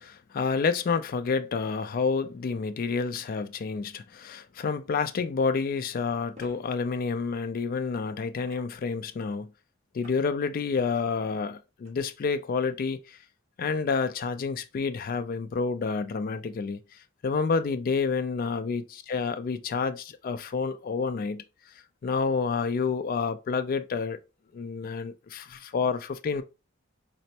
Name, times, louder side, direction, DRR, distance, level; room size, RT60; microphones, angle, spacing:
voice 1, 0.0-9.5 9.9-13.2 13.6-16.8 17.2-21.4 22.0-24.2 24.5-26.4, left 5 dB, 45° left, 0.3 m, -29 dB
sound 1, 4.8-4.9 6.3-6.6 8.4-9.0 10.0-10.3 10.7-11.0 11.8-11.9, left 1 dB, 35° right, 1.2 m, -52 dB
4.2 x 2.1 x 2.7 m
head